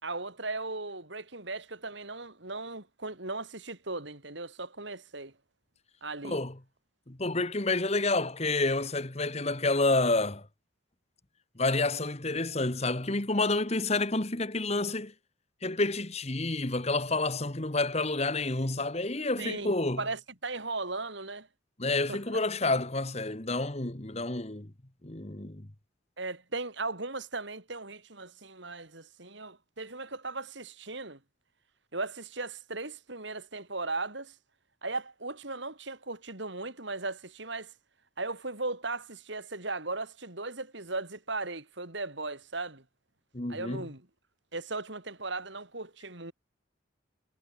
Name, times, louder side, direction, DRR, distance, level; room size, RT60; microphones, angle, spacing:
voice 1, 0.0-5.3 6.0-6.4 19.4-21.5 22.1-22.2 26.2-31.2 31.9-34.3 34.8-37.7 38.2-42.8 43.5-44.1 44.5-46.3, right 3 dB, 60° right, 3.7 m, -37 dB
voice 2, 6.2-6.5 7.1-10.5 11.6-15.1 15.6-20.0 21.8-24.7 25.0-25.7 43.3-43.8, left 2 dB, 30° left, 1.5 m, -29 dB
head